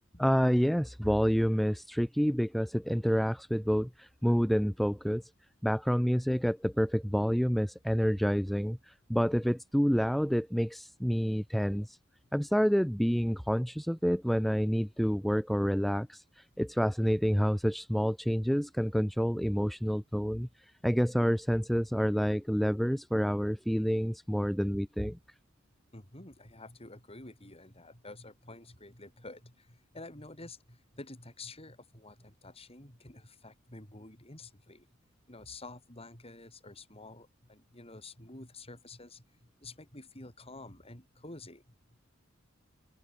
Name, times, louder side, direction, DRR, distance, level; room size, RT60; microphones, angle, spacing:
voice 1, 0.2-5.3 5.6-12.0 12.3-25.2, equal, ahead, 0.6 m, -28 dB
voice 2, 25.9-34.9 35.3-41.6, left 2 dB, 30° left, 7.6 m, -49 dB
head